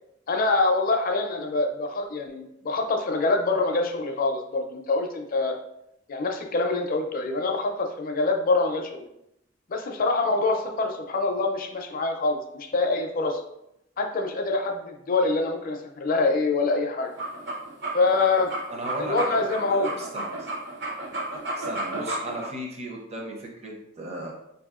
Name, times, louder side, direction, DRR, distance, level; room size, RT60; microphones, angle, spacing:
voice 1, 0.3-5.5 6.1-9.1 9.7-13.4 14.0-17.1 17.9-18.5 19.0-19.9, left 3 dB, 45° left, 3 dB, 0.4 m, -25 dB
sound 1, 17.0-22.5, right 2 dB, 60° right, 0.9 m, -32 dB
voice 2, 18.7-20.5 21.6-24.3, right 1 dB, 35° right, 0 dB, 0.6 m, -36 dB
4.5 x 2.7 x 2.4 m, 0.82 s
head